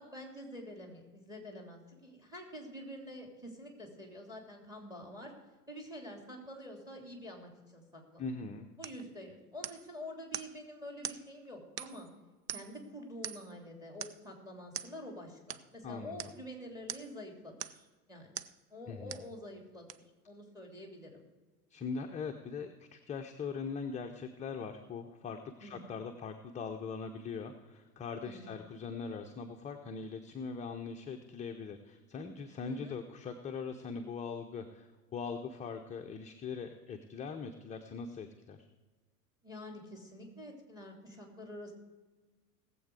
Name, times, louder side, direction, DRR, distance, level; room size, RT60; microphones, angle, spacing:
voice 1, 0.0-5.3 5.7-8.2 8.8-12.1 12.5-18.3 18.7-19.9 20.2-21.2 25.6-25.8 28.2-28.5 32.6-33.0 39.4-41.7, left 1 dB, 10° right, 2 dB, 3.3 m, -47 dB
voice 2, 8.2-8.7 15.8-16.3 18.9-19.1 21.7-38.6, left 5 dB, 15° left, 4 dB, 0.7 m, -41 dB
sound 1, 8.8-9.0 9.6-9.9 10.3-10.6 11.0-11.2 11.8-12.1 12.5-12.8 13.2-13.6 14.0-14.2 14.7-14.9 15.5-15.7 16.2-16.4 16.9-17.2 17.6-17.9 18.4-18.6 19.1-19.3 19.9-20.0, right 10 dB, 80° right, 0.7 m, -42 dB
19.0 x 7.8 x 4.8 m, 1.3 s
hypercardioid pair, 95°, 47 cm